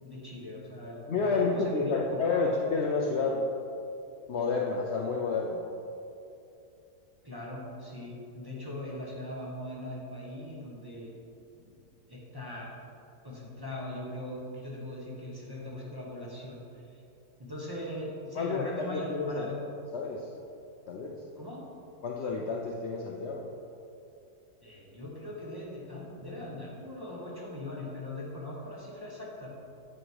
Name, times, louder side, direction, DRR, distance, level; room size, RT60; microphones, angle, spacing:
voice 1, 0.0-2.5 7.2-11.1 11.5-11.8 12.1-12.7 13.2-17.0 17.4-19.5 21.3-21.6 24.6-29.5, left 1 dB, 15° right, -5 dB, 1.4 m, -40 dB
voice 2, 1.1-3.4 4.3-5.6 18.4-19.5 19.9-20.3 20.9-21.2 22.0-23.5, left 4 dB, 55° left, -1 dB, 0.8 m, -30 dB
8.9 x 6.1 x 4.8 m, 2.7 s
omnidirectional pair, 1.7 m